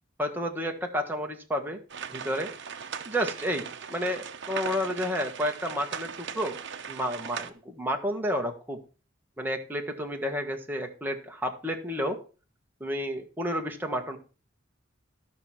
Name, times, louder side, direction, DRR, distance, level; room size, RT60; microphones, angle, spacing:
voice 1, 0.2-1.8 2.1-2.5 3.0-3.6 3.9-6.6 6.9-8.8 9.4-12.2 12.8-14.2, equal, 10° right, 3 dB, 1.5 m, -31 dB
sound 1, 1.9-7.5, right 7 dB, 65° right, 0.9 m, -38 dB
13.0 x 6.0 x 4.4 m, 0.36 s
head